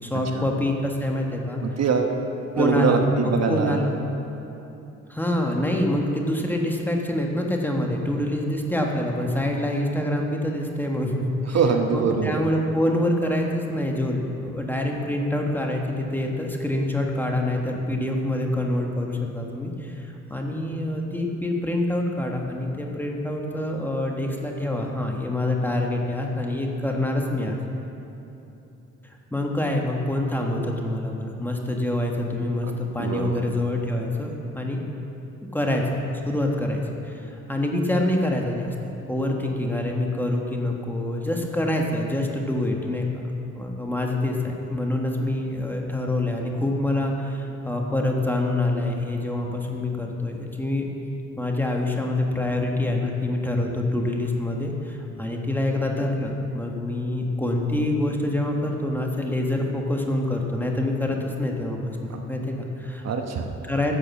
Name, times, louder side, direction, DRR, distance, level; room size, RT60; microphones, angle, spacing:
voice 1, 0.0-1.8 2.5-3.9 5.1-11.6 11.9-27.6 29.0-34.8 35.5-38.7 39.1-43.2 43.5-50.8 51.4-63.1 63.6-63.9, left 1 dB, 5° left, 0 dB, 1.5 m, -26 dB
voice 2, 1.6-2.2 2.6-3.8 11.5-12.4 32.7-33.4 62.1-62.2 63.0-63.5, right 5 dB, 60° right, 3 dB, 1.1 m, -23 dB
11.0 x 6.9 x 7.3 m, 3.0 s
cardioid pair, 90°, 30 cm